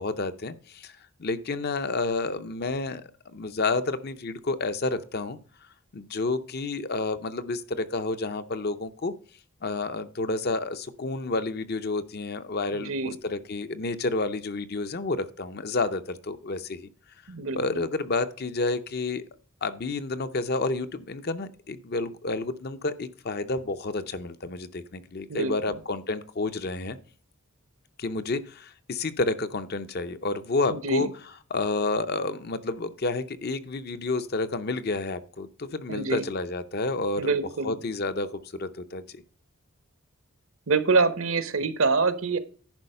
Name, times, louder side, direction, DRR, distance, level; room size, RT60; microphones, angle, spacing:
voice 1, 0.0-5.4 5.9-9.1 9.6-16.9 17.6-19.2 19.6-27.0 28.0-31.1 31.5-37.3 37.6-39.2, left 3 dB, 45° left, 11 dB, 0.6 m, -30 dB
voice 2, 12.7-13.1 17.3-17.6 25.3-25.5 30.7-31.1 35.9-36.2 37.2-37.8 40.7-42.4, right 4 dB, 65° right, 13 dB, 0.8 m, -25 dB
10.5 x 4.8 x 5.5 m, 0.43 s
head